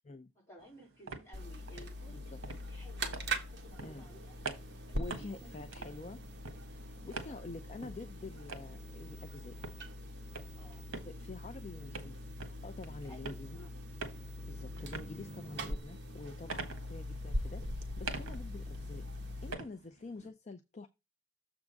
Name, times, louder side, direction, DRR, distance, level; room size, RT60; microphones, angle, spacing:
voice 1, 0.4-4.4 4.8-6.0 6.9-7.4 10.6-10.9 13.0-13.8 16.7-16.9 18.3-18.5, equal, 15° left, 3.7 m, -57 dB
sound 1, 0.6-20.3, right 4 dB, 80° right, 1.5 m, -48 dB
sound 2, 1.3-19.5, equal, 55° right, 1.4 m, -42 dB
voice 2, 2.1-2.4 3.8-4.1 4.9-6.2 6.7-9.6 11.0-13.7 14.5-20.9, left 3 dB, 30° left, 0.5 m, -48 dB
7.1 x 3.6 x 6.4 m
head